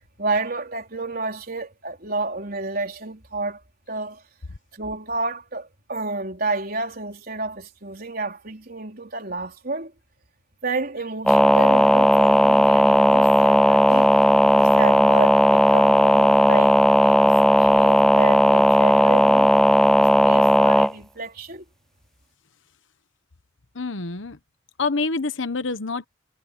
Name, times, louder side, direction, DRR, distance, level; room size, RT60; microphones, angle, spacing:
voice 1, 0.2-3.6 3.9-4.2 4.7-9.9 10.6-19.5 20.0-21.6, right 3 dB, 50° right, 4.2 m, -30 dB
sound 1, 11.3-20.9, equal, ahead, 0.4 m, -16 dB
voice 2, 23.7-24.4 24.8-26.1, left 3 dB, 75° left, 1.1 m, -27 dB
head